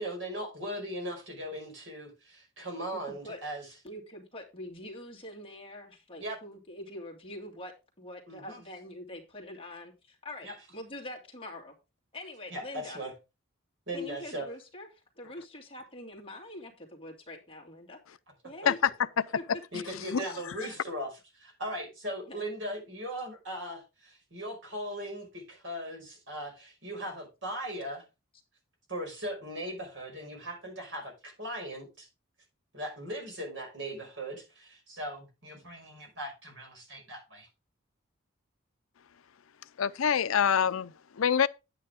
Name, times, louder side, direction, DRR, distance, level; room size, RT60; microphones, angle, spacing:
voice 1, 0.0-3.7 6.2-6.4 8.3-8.6 10.4-10.6 12.5-13.1 13.9-14.5 18.4-18.5 19.7-28.0 28.9-32.1 32.7-37.5, right 1 dB, 65° right, 5.3 m, -39 dB
voice 2, 3.1-3.4 3.8-7.7 8.0-11.7 12.1-13.0 13.9-14.9 15.2-18.0 18.4-18.8 19.4-19.5 22.3-22.4, left 1 dB, 25° left, 2.2 m, -44 dB
voice 3, 19.7-20.2 20.6-20.7 39.8-41.5, left 7 dB, 85° left, 0.5 m, -26 dB
9.8 x 9.1 x 3.5 m
head